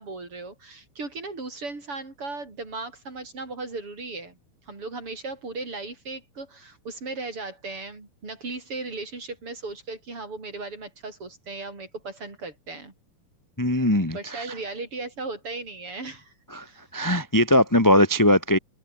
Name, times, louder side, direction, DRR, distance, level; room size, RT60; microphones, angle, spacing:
voice 1, 0.0-4.4 4.7-12.9 14.1-16.3 16.6-16.9, right 3 dB, 35° right, 6.4 m, -36 dB
voice 2, 13.6-14.5 16.5-16.6 16.9-18.6, left 1 dB, 10° left, 1.2 m, -20 dB
omnidirectional pair, 4.3 m